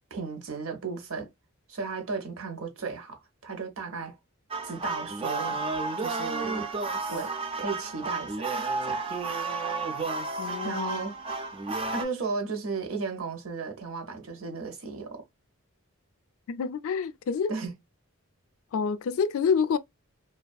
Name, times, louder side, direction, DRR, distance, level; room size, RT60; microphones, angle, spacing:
voice 1, 0.1-1.3 1.7-4.2 4.6-5.6 6.0-6.7 7.1-9.0 10.6-11.2 11.9-15.2 17.5-17.7, right 4 dB, 70° right, 0.7 m, -35 dB
sound 1, 4.5-12.1, right 3 dB, 25° right, 0.3 m, -32 dB
voice 2, 10.4-11.1 16.5-17.5 18.7-19.8, left 6 dB, 70° left, 0.3 m, -28 dB
2.6 x 2.2 x 2.2 m
head